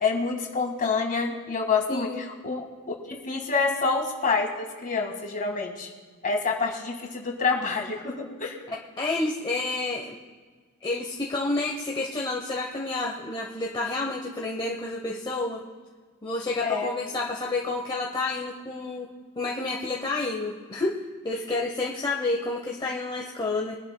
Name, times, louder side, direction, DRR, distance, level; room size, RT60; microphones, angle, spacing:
voice 1, 0.0-2.6 3.1-5.9 6.2-8.6 16.6-16.9, left 4 dB, 35° left, 1 dB, 1.8 m, -27 dB
voice 2, 1.9-2.2 8.7-10.2 10.8-15.7 16.2-19.1 19.4-23.8, left 2 dB, 20° left, -2 dB, 0.8 m, -29 dB
23.0 x 11.0 x 2.2 m, 1.5 s
head